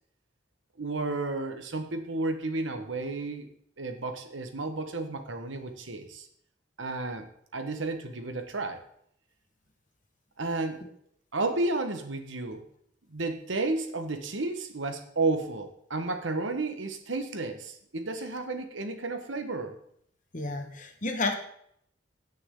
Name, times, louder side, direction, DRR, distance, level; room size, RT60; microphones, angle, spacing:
voice 1, 0.8-3.5 3.8-6.3 6.8-7.3 7.5-8.8 10.4-10.8 11.3-12.6 13.1-19.8, right 3 dB, 90° right, 6 dB, 1.4 m, -32 dB
voice 2, 20.3-21.3, left 3 dB, 45° left, 4 dB, 1.4 m, -31 dB
17.0 x 6.1 x 3.8 m, 0.67 s
head